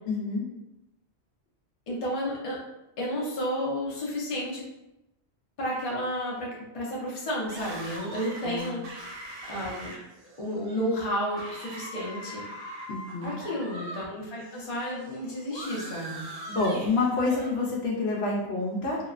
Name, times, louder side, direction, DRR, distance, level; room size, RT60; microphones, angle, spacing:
voice 1, 0.1-0.5 8.4-8.8 12.9-13.4 16.5-19.0, left 3 dB, 70° left, -3 dB, 0.8 m, -28 dB
voice 2, 1.9-2.6 3.0-4.6 5.6-8.8 9.5-10.0 10.4-12.5 13.2-16.3, equal, 35° left, -4 dB, 0.6 m, -32 dB
sound 1, 7.5-14.1 14.3-17.5, right 1 dB, 55° right, 0.4 m, -42 dB
2.8 x 2.1 x 2.4 m, 0.91 s
omnidirectional pair, 1.1 m